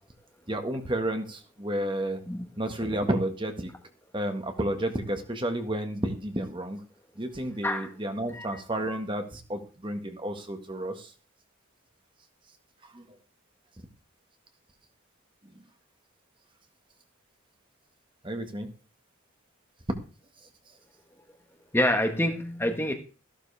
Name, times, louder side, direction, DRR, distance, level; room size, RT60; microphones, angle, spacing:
voice 1, 0.5-2.2 2.6-3.7 4.1-6.8 7.2-11.1 12.9-13.1 15.5-15.6 18.2-18.7, right 1 dB, 25° right, 6 dB, 1.7 m, -31 dB
voice 2, 21.7-22.9, left 1 dB, 10° left, 4 dB, 1.4 m, -27 dB
15.0 x 12.0 x 3.5 m, 0.35 s
head